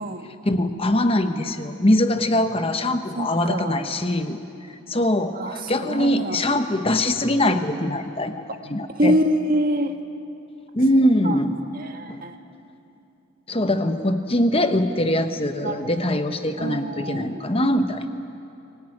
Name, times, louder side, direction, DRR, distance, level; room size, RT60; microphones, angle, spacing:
voice 1, 0.4-4.4 4.9-8.3 8.6-9.2 10.7-11.6 12.1-12.2 13.5-18.1, left 1 dB, 25° left, 8 dB, 1.0 m, -22 dB
voice 2, 3.1-3.8 5.3-6.4 8.9-9.9 11.2-11.4 11.7-12.4 15.6-15.9 16.6-17.5, equal, 40° right, 6 dB, 1.5 m, -25 dB
24.0 x 18.5 x 9.9 m, 2.7 s
head